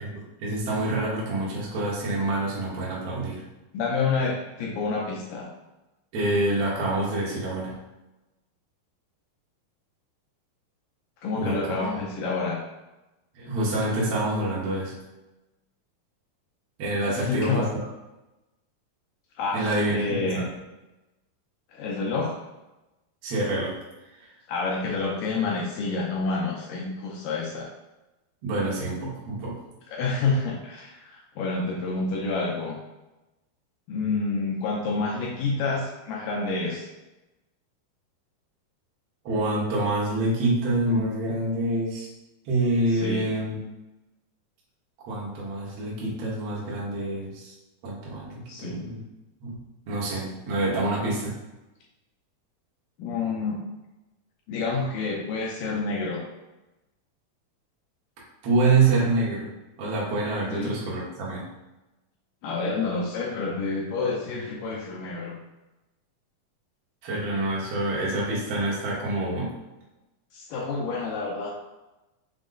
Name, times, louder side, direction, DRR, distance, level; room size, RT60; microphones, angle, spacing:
voice 1, 0.4-3.4 6.1-7.8 11.3-11.9 13.3-14.9 16.8-17.6 19.5-20.5 23.2-23.8 28.4-29.5 39.2-42.1 42.5-43.5 45.0-47.5 47.8-49.0 49.4-49.6 49.9-51.3 58.4-59.5 59.8-61.5 67.0-69.5, right 2 dB, 65° right, -6 dB, 1.5 m, -26 dB
voice 2, 3.7-5.5 11.2-12.6 17.1-17.7 19.4-20.5 21.7-22.4 24.5-27.7 29.9-32.8 33.9-36.9 42.9-43.3 48.5-48.8 53.0-53.6 54.5-56.2 60.5-60.7 62.4-65.4 70.3-71.5, left 3 dB, 80° left, -2 dB, 2.1 m, -28 dB
6.0 x 2.1 x 3.8 m, 1.0 s
omnidirectional pair, 4.5 m